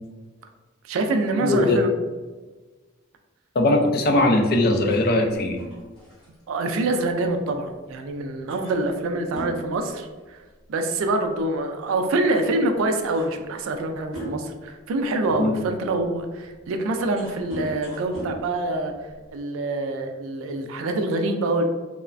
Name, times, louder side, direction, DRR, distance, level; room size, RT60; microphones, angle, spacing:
voice 1, 0.8-1.9 6.5-10.4 10.7-18.9 19.3-21.6, right 2 dB, 75° right, 6 dB, 0.3 m, -25 dB
voice 2, 1.4-1.8 3.6-5.6 15.4-15.5, left 2 dB, 45° left, 3 dB, 0.3 m, -20 dB
sound 1, 4.7-7.8 8.1-8.2 8.5-10.7 10.9-11.2 12.2-12.3 12.7-14.7 15.3-19.4, right 2 dB, 5° left, 1.3 m, -39 dB
3.1 x 2.0 x 2.4 m, 1.3 s
head